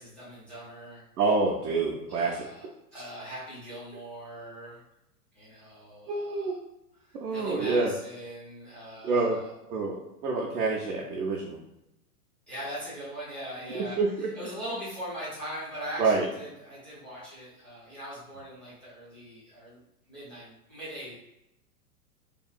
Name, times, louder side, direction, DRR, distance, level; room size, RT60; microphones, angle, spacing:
voice 1, 0.0-1.0 2.1-2.6 2.9-4.8 5.3-6.5 7.0-9.5 12.5-14.0 14.3-19.8 20.1-21.1, equal, 5° left, -11 dB, 0.4 m, -41 dB
voice 2, 1.2-2.5 6.1-6.6 7.1-7.9 9.0-9.4 9.7-11.6 13.7-14.3 16.0-16.3, right 3 dB, 75° right, -4 dB, 0.6 m, -27 dB
2.8 x 2.4 x 2.2 m, 0.87 s
hypercardioid pair, 115°, 47 cm